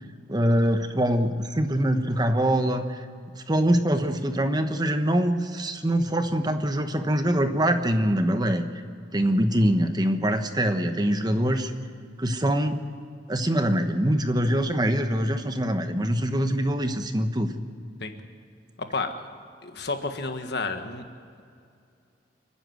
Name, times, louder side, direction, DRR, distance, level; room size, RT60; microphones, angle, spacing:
voice 1, 0.3-3.0 3.3-8.6 9.1-11.7 12.2-12.8 13.3-17.5, equal, 25° right, 7 dB, 1.1 m, -24 dB
voice 2, 18.8-19.1 19.6-21.0, left 3 dB, 65° left, 6 dB, 1.6 m, -30 dB
29.5 x 10.0 x 9.4 m, 2.3 s
head